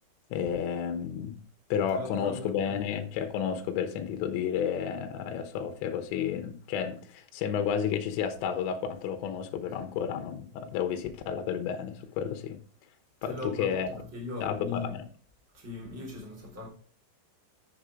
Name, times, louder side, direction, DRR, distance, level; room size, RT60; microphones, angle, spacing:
voice 1, 0.3-1.4 1.7-12.6 13.2-13.9 14.4-15.0, left 8 dB, 80° left, 3.1 m, -31 dB
voice 2, 1.9-2.9 9.7-9.9 13.2-15.0 15.5-16.7, left 3 dB, 5° right, 2.8 m, -39 dB
8.0 x 7.1 x 5.0 m
omnidirectional pair, 5.3 m